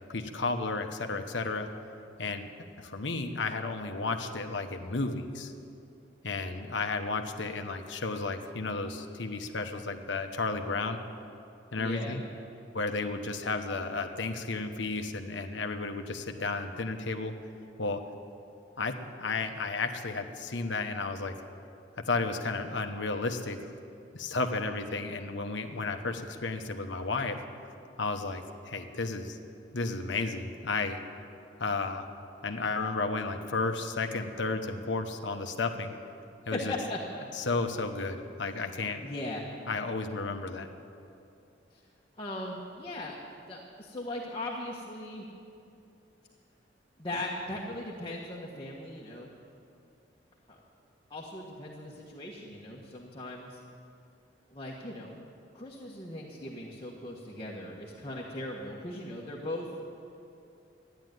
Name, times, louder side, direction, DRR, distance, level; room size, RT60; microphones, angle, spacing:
voice 1, 0.1-1.7 2.2-2.5 2.8-5.5 6.2-11.0 11.7-12.2 12.7-17.3 17.8-18.0 18.8-21.4 22.0-23.6 24.1-27.4 28.0-29.4 29.7-31.0 31.6-32.1 32.4-35.9 36.5-36.7 37.3-39.1 39.7-40.7, left 3 dB, 80° left, 6 dB, 1.1 m, -33 dB
voice 2, 11.7-12.2 36.5-37.2 39.0-39.5 41.7-41.8 42.2-43.2 43.5-45.3 47.0-49.3 50.5-50.6 51.1-53.6 54.5-55.2 55.5-59.7, left 1 dB, 25° left, -4 dB, 1.5 m, -38 dB
14.0 x 10.5 x 9.4 m, 2.6 s
head